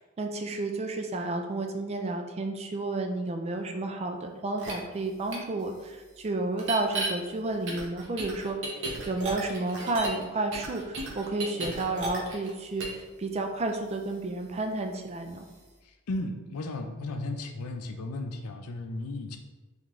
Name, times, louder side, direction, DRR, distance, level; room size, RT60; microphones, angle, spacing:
voice 1, 0.2-8.8 9.0-15.5, right 2 dB, 30° right, 4 dB, 0.3 m, -31 dB
sound 1, 4.6-4.7 5.3-5.4 6.6-7.1 7.7-10.2 10.5-12.5 12.8-13.0, right 2 dB, 55° right, 0.9 m, -34 dB
voice 2, 15.8-19.4, left 2 dB, 85° left, 5 dB, 0.5 m, -35 dB
3.7 x 3.5 x 3.1 m, 1.2 s
head